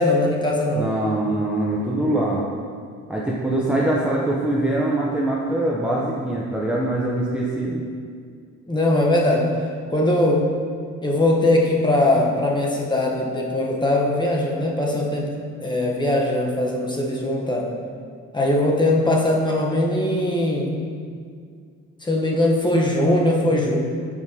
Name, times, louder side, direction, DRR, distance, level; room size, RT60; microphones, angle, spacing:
voice 1, 0.0-0.9 8.7-9.5 9.9-10.5 11.0-15.3 15.6-17.7 18.3-20.8 22.0-23.8, left 1 dB, 15° left, -2 dB, 0.9 m, -20 dB
voice 2, 0.7-2.4 3.1-7.8, right 1 dB, 5° right, -5 dB, 0.6 m, -23 dB
7.2 x 4.7 x 2.8 m, 2.1 s
cardioid pair, 90°, 30 cm